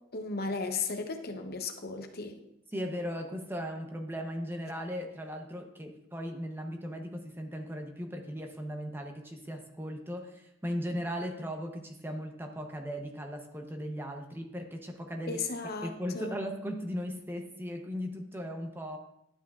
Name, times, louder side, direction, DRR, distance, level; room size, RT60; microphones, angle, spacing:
voice 1, 0.1-2.4 15.3-16.3, left 4 dB, 55° left, 5 dB, 0.8 m, -35 dB
voice 2, 2.7-15.4 15.8-19.0, equal, 10° right, 4 dB, 0.7 m, -37 dB
11.5 x 7.2 x 2.4 m, 0.78 s
head